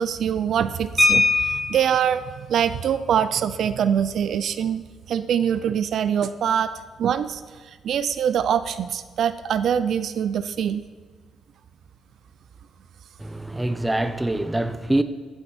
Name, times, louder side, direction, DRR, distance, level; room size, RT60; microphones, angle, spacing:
voice 1, 0.0-4.8 5.1-6.7 7.0-7.4 7.8-10.8, right 8 dB, 65° right, 0.5 m, -24 dB
sound 1, 1.0-2.1 3.5-3.6 4.0-4.2 4.5-4.8, left 3 dB, 10° left, 1.8 m, -21 dB
voice 2, 13.2-15.0, right 1 dB, 10° right, 0.7 m, -24 dB
14.5 x 8.0 x 4.4 m
cardioid pair, 90°, 0 cm